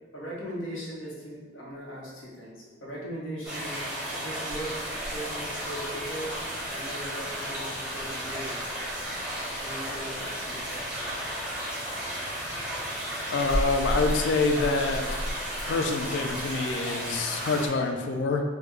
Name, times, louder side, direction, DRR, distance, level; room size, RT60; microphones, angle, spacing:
voice 1, 0.1-6.4 6.7-8.7 9.6-11.2, right 1 dB, 90° left, -4 dB, 0.9 m, -39 dB
sound 1, 3.4-17.7, equal, 5° right, 0.7 m, -33 dB
voice 2, 13.3-15.2 15.6-18.4, left 3 dB, 65° left, 4 dB, 0.3 m, -26 dB
3.5 x 2.1 x 3.2 m, 1.3 s
head